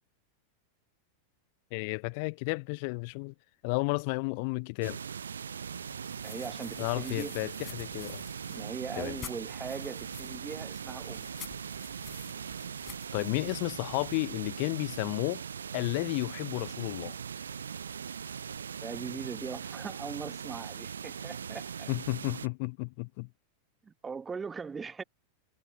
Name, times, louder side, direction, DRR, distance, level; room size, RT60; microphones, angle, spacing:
voice 1, 1.7-3.3 3.6-5.0 6.8-8.2 9.0-9.2 13.1-15.4 15.7-17.2 21.9-23.3, left 32 dB, 45° left, 0.7 m, -32 dB
sound 1, 4.8-22.5, right 7 dB, 70° right, 0.5 m, -40 dB
sound 2, 5.7-14.3, left 9 dB, 25° left, 7.4 m, -51 dB
voice 2, 6.2-7.4 8.5-11.3 18.8-21.9 23.8-25.0, right 5 dB, 15° right, 1.4 m, -40 dB
figure-of-eight pair, 90°, 0 cm